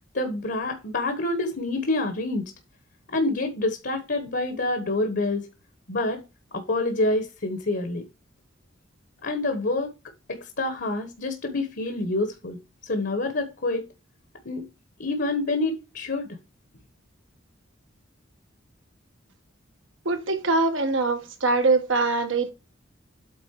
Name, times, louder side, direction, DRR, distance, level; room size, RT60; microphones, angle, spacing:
voice 1, 0.1-2.4 3.1-5.4 5.9-6.2 6.5-8.0 9.2-9.9 10.3-13.9 14.4-14.7 15.0-16.3, left 2 dB, 55° left, 1.3 m, -27 dB
voice 2, 20.0-22.5, right 3 dB, 75° right, 1.6 m, -23 dB
8.4 x 3.9 x 4.7 m
head